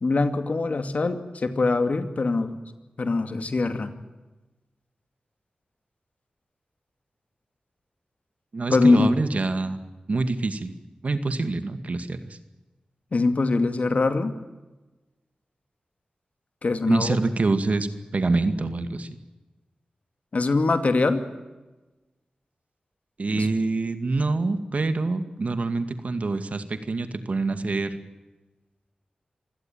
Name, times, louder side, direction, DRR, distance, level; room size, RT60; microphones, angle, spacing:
voice 1, 0.0-2.6 3.0-3.9 8.7-9.1 13.1-14.3 16.6-17.2 20.3-21.2 23.4-23.5, left 3 dB, 60° left, 9 dB, 2.4 m, -23 dB
voice 2, 8.5-9.8 10.1-10.8 11.0-12.4 16.9-17.9 18.1-19.1 23.2-28.0, right 3 dB, 60° right, 10 dB, 2.2 m, -26 dB
25.5 x 16.5 x 9.1 m, 1.1 s
cardioid pair, 45°, 3 cm